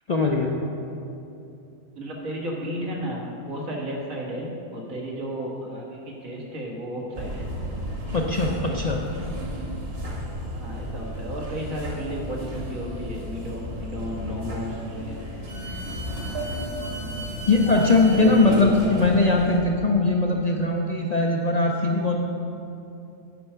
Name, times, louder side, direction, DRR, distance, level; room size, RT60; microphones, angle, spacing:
voice 1, 0.1-0.6 8.1-9.0 17.5-22.2, left 3 dB, 50° left, 0 dB, 0.5 m, -20 dB
voice 2, 2.0-7.5 8.5-8.8 10.5-15.2 17.7-17.9 18.2-18.7, equal, 80° right, -2 dB, 2.0 m, -33 dB
sound 1, 7.1-19.6, equal, 50° right, 1.5 m, -33 dB
9.3 x 5.8 x 5.6 m, 2.8 s
omnidirectional pair, 1.4 m